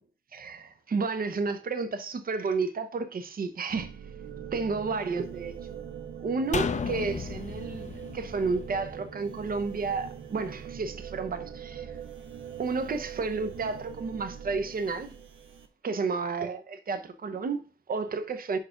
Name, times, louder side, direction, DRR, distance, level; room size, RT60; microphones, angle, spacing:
voice 1, 0.3-3.9 4.5-5.5 6.2-11.9 12.6-15.1 15.8-18.6, right 4 dB, 45° right, 0.8 m, -31 dB
sound 1, 3.7-15.7, right 8 dB, 75° right, 1.0 m, -42 dB
sound 2, 6.5-9.9 10.2-10.3, left 5 dB, 35° left, 0.5 m, -34 dB
5.6 x 4.7 x 5.0 m
wide cardioid pair, 150°, 20 cm